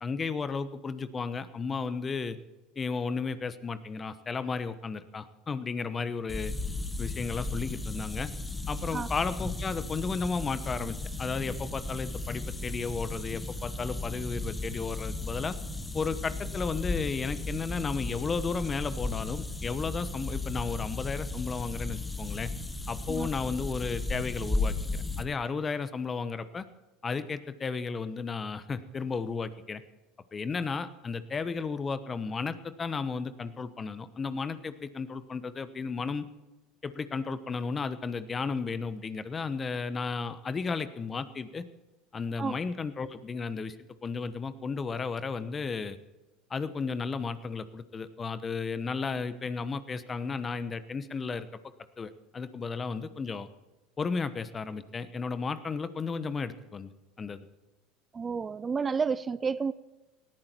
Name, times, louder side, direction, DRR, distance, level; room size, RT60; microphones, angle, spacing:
voice 1, 0.0-2.4 2.8-6.5 7.0-8.3 8.7-15.6 15.9-22.5 22.9-26.6 27.0-29.8 30.3-36.2 36.8-41.6 42.1-43.8 44.0-46.0 46.5-51.5 52.0-53.5 54.0-56.9 57.2-57.4, left 5 dB, 25° left, 13 dB, 1.1 m, -33 dB
sound 1, 6.3-25.2, left 2 dB, 10° left, 1.4 m, -35 dB
voice 2, 58.1-59.7, right 5 dB, 25° right, 16 dB, 0.5 m, -30 dB
19.0 x 14.0 x 4.6 m, 1.1 s
hypercardioid pair, 85°, 0 cm